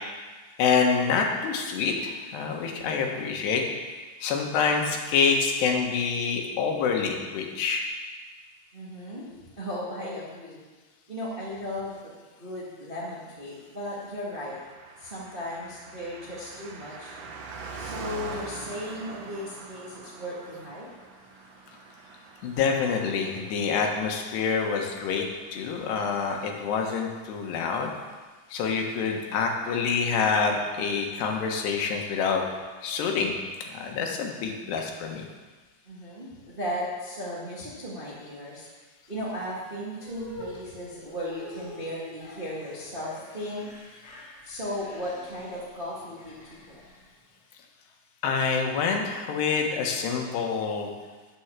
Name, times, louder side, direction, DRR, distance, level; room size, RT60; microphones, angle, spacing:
voice 1, 0.6-3.6 4.2-7.9 22.4-25.3 25.5-27.9 28.5-32.4 32.8-33.3 33.6-35.2 48.2-50.9, left 5 dB, 85° left, 2 dB, 3.5 m, -26 dB
voice 2, 8.7-10.6 11.1-12.0 12.4-14.6 15.0-17.1 17.8-20.9 35.8-38.7 39.1-43.6 44.4-46.8, equal, 30° right, -6 dB, 1.0 m, -36 dB
Car passing by, 14.3-26.2 26.4-26.5, right 4 dB, 80° right, 1.4 m, -44 dB
sound 1, 40.0-47.4, left 1 dB, 60° left, 4.2 m, -47 dB
10.0 x 8.0 x 7.3 m, 1.3 s
omnidirectional pair, 4.7 m